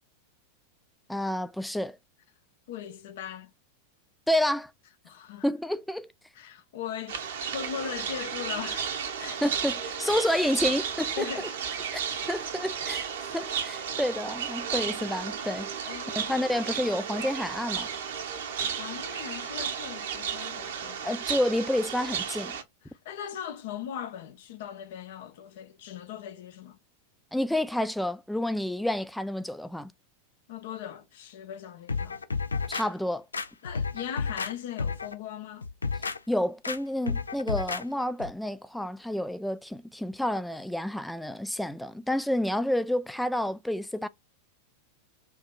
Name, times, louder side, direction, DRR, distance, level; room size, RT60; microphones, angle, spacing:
voice 1, 1.1-2.0 4.3-4.7 5.4-6.1 9.4-11.3 11.9-12.0 12.3-15.7 16.2-17.9 21.0-22.6 27.3-29.9 32.7-33.3 36.3-44.1, left 1 dB, ahead, 0.3 m, -29 dB
voice 2, 2.7-3.5 5.0-5.5 6.3-7.2 7.5-8.9 9.2-9.5 10.1-10.3 11.2-11.5 13.2-13.3 15.9-16.3 18.6-21.0 22.9-26.8 30.5-32.2 33.6-35.7, left 9 dB, 55° left, 0.7 m, -39 dB
sound 1, 7.1-22.6, right 7 dB, 60° right, 0.9 m, -33 dB
sound 2, 31.9-32.9 33.3-34.5 34.8-35.1 35.6-36.2 36.6-36.8 37.1-37.8 38.2-38.3, left 4 dB, 75° left, 0.4 m, -31 dB
4.6 x 2.7 x 2.4 m
figure-of-eight pair, 90°, 0 cm